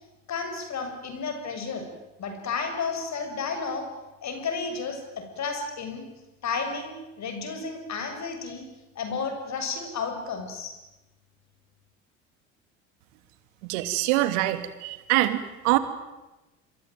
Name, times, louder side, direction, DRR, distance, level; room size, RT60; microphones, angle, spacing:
voice 1, 0.3-1.8 2.2-3.9 4.2-6.0 6.4-8.6 9.0-10.7, left 5 dB, 45° left, 6 dB, 7.6 m, -32 dB
voice 2, 13.6-15.8, right 16 dB, 70° right, 11 dB, 2.9 m, -24 dB
27.5 x 23.5 x 9.3 m, 1.1 s
hypercardioid pair, 65°, 38 cm